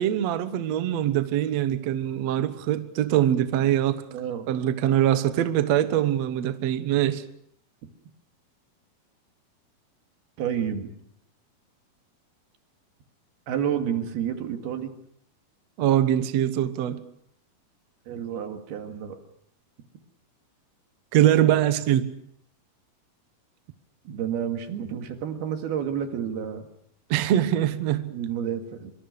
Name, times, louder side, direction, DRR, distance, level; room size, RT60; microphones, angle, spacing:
voice 1, 0.0-4.0 4.5-7.2 15.8-17.0 21.1-22.1 27.1-28.2, right 11 dB, 60° right, 1.9 m, -23 dB
voice 2, 4.1-4.5 10.4-10.9 13.5-14.9 18.1-19.2 24.1-26.7 28.1-28.9, right 8 dB, 90° right, 4.0 m, -30 dB
25.0 x 24.5 x 6.6 m
omnidirectional pair, 4.4 m